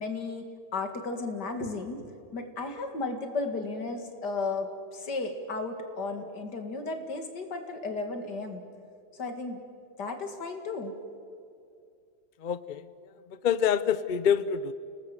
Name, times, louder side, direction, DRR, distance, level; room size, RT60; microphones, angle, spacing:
voice 1, 0.0-8.6 9.1-9.6 10.0-11.0, left 3 dB, 75° left, 6 dB, 2.7 m, -34 dB
voice 2, 12.4-12.9 13.3-14.7, left 8 dB, 55° left, 14 dB, 0.5 m, -26 dB
29.5 x 19.0 x 7.9 m, 2.4 s
omnidirectional pair, 1.8 m